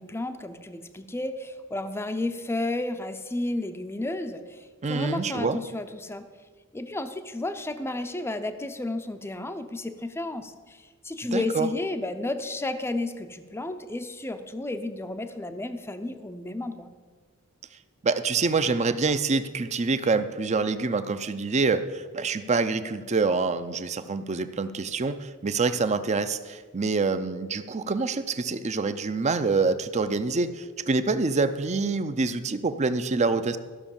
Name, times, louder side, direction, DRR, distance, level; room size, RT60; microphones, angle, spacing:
voice 1, 0.0-6.3 6.7-16.9, left 2 dB, 10° left, 8 dB, 0.5 m, -32 dB
voice 2, 4.8-5.6 11.3-11.7 18.0-33.6, right 4 dB, 30° right, 11 dB, 0.5 m, -26 dB
14.0 x 6.1 x 7.1 m, 1.5 s
head